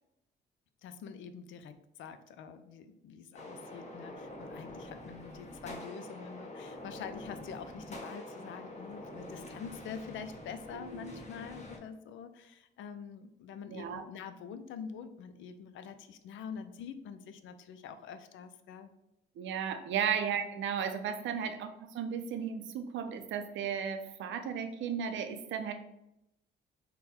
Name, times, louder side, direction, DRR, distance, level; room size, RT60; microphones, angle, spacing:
voice 1, 0.8-18.9, left 6 dB, 75° left, 10 dB, 0.4 m, -46 dB
sound 1, 3.3-11.8, left 1 dB, 35° left, 0.9 m, -46 dB
voice 2, 10.7-11.2 13.7-14.0 19.4-25.7, right 7 dB, 75° right, 8 dB, 0.5 m, -35 dB
3.6 x 2.2 x 4.1 m, 0.84 s
cardioid pair, 90°, 20 cm